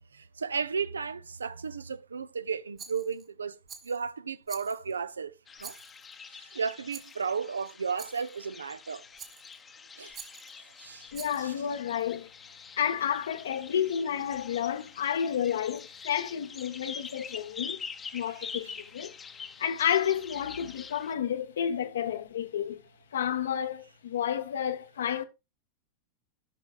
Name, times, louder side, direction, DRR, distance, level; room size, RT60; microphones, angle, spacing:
voice 1, 0.0-5.8 6.2-9.1 10.0-10.2 10.8-11.1 11.4-11.5 18.2-18.5, right 5 dB, 75° right, 0.4 m, -34 dB
Rattle, 2.8-3.3 3.7-4.0 4.5-5.0 5.6-6.2 6.9-7.2 8.0-8.4 9.2-9.6 10.1-10.6 11.1-11.6, right 6 dB, 25° right, 1.3 m, -47 dB
sound 1, 5.5-21.1, left 6 dB, 20° left, 0.7 m, -45 dB
voice 2, 11.1-12.3 12.8-17.8 18.1-19.2 19.6-22.8 23.1-25.2, left 9 dB, 60° left, 0.8 m, -30 dB
14.5 x 5.7 x 2.3 m
figure-of-eight pair, 90°, 0 cm